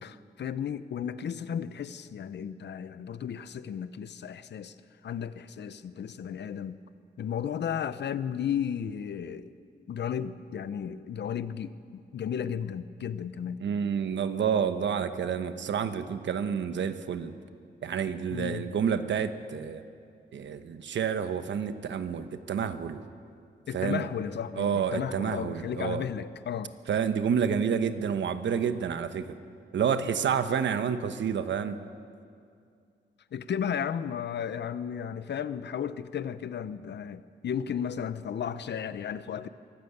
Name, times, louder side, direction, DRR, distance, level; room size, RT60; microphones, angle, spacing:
voice 1, 0.0-4.7 5.0-6.8 7.2-9.5 9.9-13.6 18.3-18.7 23.7-26.7 33.3-39.5, left 8 dB, 70° left, 14 dB, 0.8 m, -34 dB
voice 2, 13.6-17.3 17.8-19.8 20.3-23.0 23.7-24.0 24.6-26.0 26.9-29.3 29.7-31.8, right 7 dB, 90° right, 10 dB, 1.1 m, -29 dB
24.0 x 14.0 x 8.1 m, 2.4 s
wide cardioid pair, 155°, 18 cm